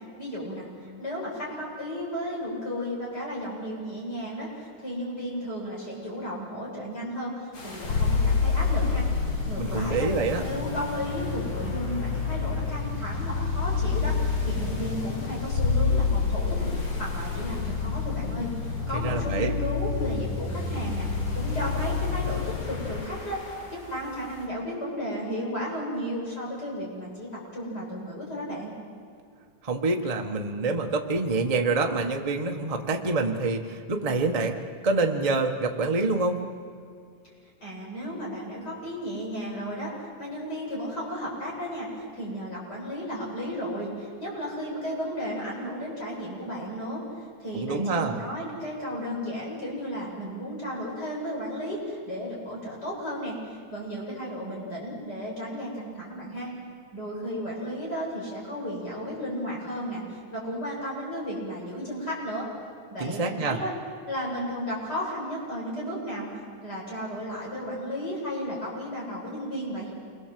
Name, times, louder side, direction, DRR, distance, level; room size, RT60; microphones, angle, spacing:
voice 1, 0.2-9.1 9.5-10.1 10.3-18.5 18.9-28.7 37.6-56.5 56.9-62.5 62.9-63.7 64.1-66.3 66.6-69.9, equal, 30° left, -4 dB, 7.8 m, -34 dB
sound 1, 7.5-24.5, left 2 dB, 75° left, 5.5 m, -43 dB
sound 2, 7.8-23.0, left 5 dB, 55° left, 1.7 m, -28 dB
voice 2, 9.6-10.5 18.9-19.5 29.6-34.6 34.8-36.5 47.5-48.2 63.0-63.6, right 3 dB, 65° right, 2 dB, 0.3 m, -26 dB
28.0 x 22.5 x 7.7 m, 2.3 s
omnidirectional pair, 3.5 m